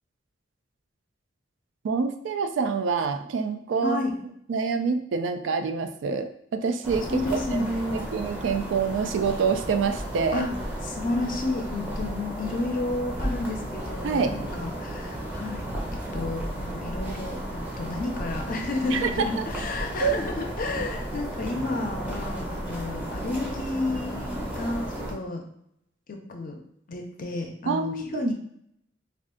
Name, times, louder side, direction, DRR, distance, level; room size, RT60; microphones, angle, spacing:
voice 1, 1.8-4.0 4.5-10.4 14.0-14.3 18.9-19.3 20.0-20.2 27.7-28.3, right 5 dB, 75° right, 9 dB, 0.3 m, -26 dB
voice 2, 3.8-4.1 7.1-8.0 10.3-10.5 10.8-15.6 15.9-25.4 26.1-26.6 26.9-28.3, left 2 dB, 50° left, 3 dB, 0.5 m, -31 dB
sound 1, 6.8-25.1, right 1 dB, 10° right, 0.6 m, -34 dB
2.5 x 2.4 x 3.6 m, 0.73 s
head